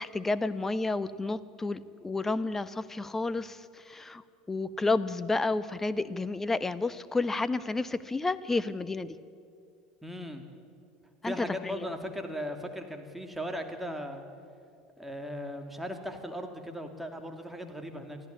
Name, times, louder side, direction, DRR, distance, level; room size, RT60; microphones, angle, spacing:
voice 1, 0.0-9.2 11.2-11.9, left 3 dB, 15° left, 15 dB, 1.0 m, -31 dB
voice 2, 10.0-10.5 11.2-14.2 15.0-18.3, equal, 5° right, 4 dB, 2.9 m, -38 dB
24.0 x 14.5 x 9.5 m, 2.3 s
hypercardioid pair, 75°, 2 cm